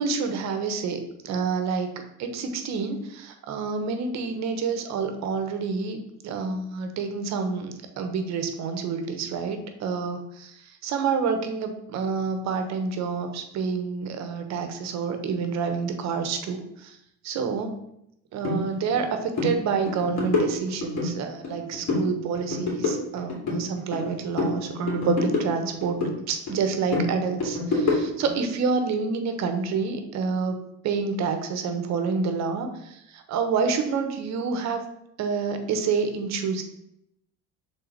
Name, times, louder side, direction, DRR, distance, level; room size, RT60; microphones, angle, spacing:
voice 1, 0.0-6.0 6.2-17.0 17.2-17.8 18.3-26.0 26.3-34.8 35.2-36.6, right 5 dB, 55° right, 7 dB, 1.0 m, -28 dB
sound 1, 18.4-18.6 18.9-19.1 19.3-19.5 19.9-21.1 21.4-22.1 22.3-24.1 24.4-26.1 26.5-28.3, left 3 dB, 55° left, 2.5 m, -27 dB
6.7 x 3.8 x 4.0 m, 0.79 s
cardioid pair, 110°, 33 cm